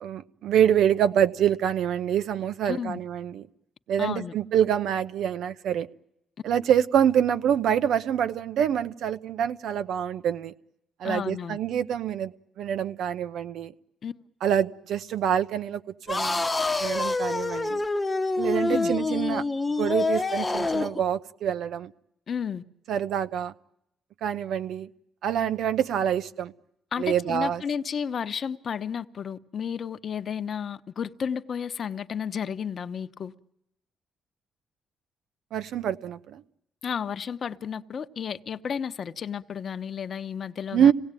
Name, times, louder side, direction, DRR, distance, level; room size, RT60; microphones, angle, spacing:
voice 1, 0.0-3.4 3.9-5.9 6.4-10.5 11.0-13.7 14.4-15.8 16.1-16.4 16.8-17.8 18.4-19.4 19.8-21.9 22.9-23.5 24.2-24.9 25.2-26.5 27.0-27.6 35.5-36.4 40.7-40.9, right 9 dB, 75° right, 0.9 m, -26 dB
voice 2, 2.6-3.0 4.0-4.3 11.0-11.6 14.0-14.1 18.7-18.9 22.3-22.6 26.9-33.3 36.8-40.9, left 7 dB, 50° left, 1.0 m, -32 dB
sound 1, 16.1-21.0, left 3 dB, 15° left, 1.0 m, -26 dB
26.0 x 18.0 x 9.1 m
cardioid pair, 90°, 0 cm